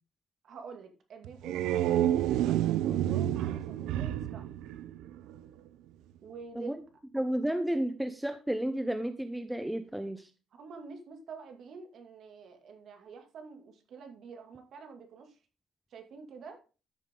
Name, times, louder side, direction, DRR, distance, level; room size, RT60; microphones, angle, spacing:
voice 1, 0.4-4.5 6.2-6.8 10.5-15.4 15.9-16.6, right 5 dB, 45° right, 5 dB, 2.5 m, -47 dB
sound 1, 1.2-5.5, right 12 dB, 85° right, 0.8 m, -29 dB
voice 2, 7.1-10.3, right 1 dB, 5° right, 8 dB, 0.6 m, -32 dB
13.5 x 7.2 x 3.8 m, 0.34 s
cardioid pair, 170°, 0 cm